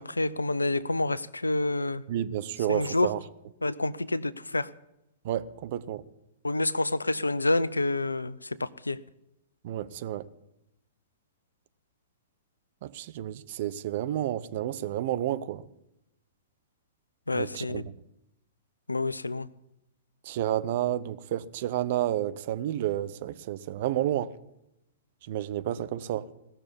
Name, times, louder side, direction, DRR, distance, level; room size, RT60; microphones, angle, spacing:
voice 1, 0.0-2.0 2.7-3.1 3.6-4.7 6.4-9.0 17.3-17.9 18.9-19.5, left 2 dB, 80° left, 0.6 m, -28 dB
voice 2, 2.1-3.2 5.2-6.0 9.6-10.3 12.8-15.6 17.3-17.8 20.2-24.3 25.3-26.3, right 12 dB, 50° right, 0.8 m, -30 dB
18.0 x 6.7 x 10.0 m
figure-of-eight pair, 105°, 0 cm